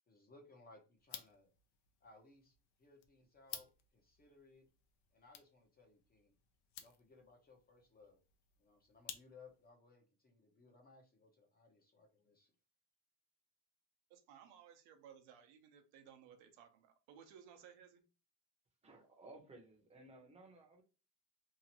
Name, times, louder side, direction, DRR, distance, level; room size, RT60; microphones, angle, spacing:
voice 1, 0.1-1.5 2.0-4.7 5.1-6.4 6.8-8.2 8.6-12.5, left 3 dB, 20° left, 0.6 m, -63 dB
sound 1, 1.0-9.7, left 9 dB, 70° left, 0.6 m, -56 dB
voice 2, 14.1-18.1, right 8 dB, 85° right, 0.7 m, -60 dB
voice 3, 18.8-20.8, right 2 dB, 15° right, 0.7 m, -58 dB
2.8 x 2.4 x 2.8 m
cardioid pair, 140°, 43 cm